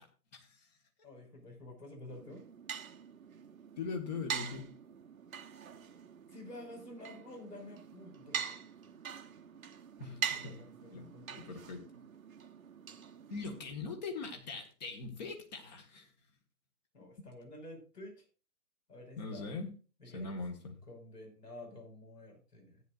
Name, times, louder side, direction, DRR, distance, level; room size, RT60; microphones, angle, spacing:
voice 1, 1.0-2.4 6.3-8.6 10.3-11.6 16.9-18.2 18.9-19.5 20.0-20.3 20.9-22.8, left 1 dB, 75° left, 2 dB, 5.6 m, -50 dB
sound 1, 2.1-13.7, right 7 dB, 55° right, 1.0 m, -44 dB
voice 2, 3.8-4.6 10.0-10.6 10.9-11.1 11.4-11.8 13.3-16.1 17.2-17.3 19.2-19.7 20.1-20.8, left 4 dB, 25° left, 4 dB, 1.6 m, -41 dB
15.0 x 9.6 x 2.5 m, 0.35 s
figure-of-eight pair, 145°, 48 cm